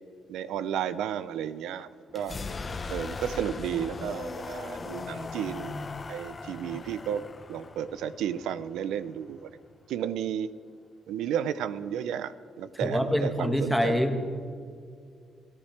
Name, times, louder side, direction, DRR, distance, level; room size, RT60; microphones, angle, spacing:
voice 1, 0.3-1.9 2.1-2.4 2.9-5.8 6.1-7.2 7.5-9.5 9.9-10.5 11.1-14.0, right 9 dB, 85° right, 14 dB, 0.5 m, -32 dB
sound 1, 2.1-9.8, left 4 dB, 35° left, 0.9 m, -39 dB
voice 2, 12.8-14.3, equal, ahead, 4 dB, 1.6 m, -26 dB
23.0 x 14.0 x 3.3 m, 2.2 s
cardioid pair, 90°, 0 cm